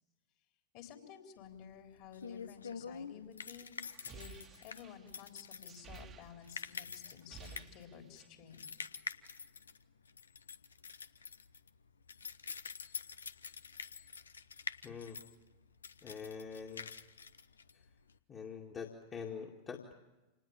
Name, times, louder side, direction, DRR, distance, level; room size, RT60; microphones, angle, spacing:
voice 1, 0.7-3.8 4.1-8.7, left 8 dB, 45° left, 5 dB, 3.9 m, -53 dB
sound 1, 1.4-18.2, left 6 dB, 70° left, 0.9 m, -47 dB
sound 2, 3.8-6.8 7.1-8.4, right 6 dB, 25° right, 1.5 m, -54 dB
voice 2, 14.8-15.2 16.0-16.9 18.3-19.9, left 6 dB, 25° left, 1 dB, 2.2 m, -45 dB
27.5 x 19.5 x 8.8 m, 1.1 s
figure-of-eight pair, 90°, 0 cm